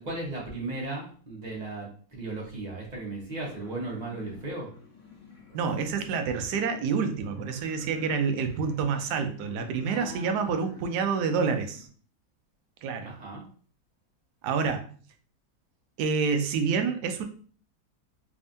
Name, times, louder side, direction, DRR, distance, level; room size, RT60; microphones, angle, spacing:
voice 1, 0.0-4.7 9.8-10.7 13.0-13.4, right 2 dB, 25° right, -4 dB, 1.2 m, -36 dB
sound 1, 3.3-11.9, left 5 dB, 50° left, 1.7 m, -50 dB
voice 2, 5.5-11.9 12.8-13.2 14.4-14.9 16.0-17.3, right 5 dB, 75° right, 7 dB, 1.1 m, -28 dB
3.5 x 3.4 x 2.6 m, 0.44 s
omnidirectional pair, 1.8 m